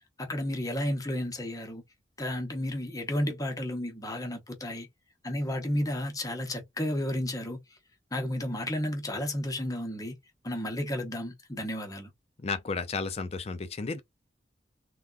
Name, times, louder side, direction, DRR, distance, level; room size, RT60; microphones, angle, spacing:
voice 1, 0.2-1.8 2.2-4.9 5.2-7.6 8.1-10.2 10.4-12.1, left 1 dB, 20° left, 0.8 m, -32 dB
voice 2, 12.4-14.0, left 4 dB, 35° left, 0.4 m, -33 dB
3.5 x 2.2 x 2.4 m
head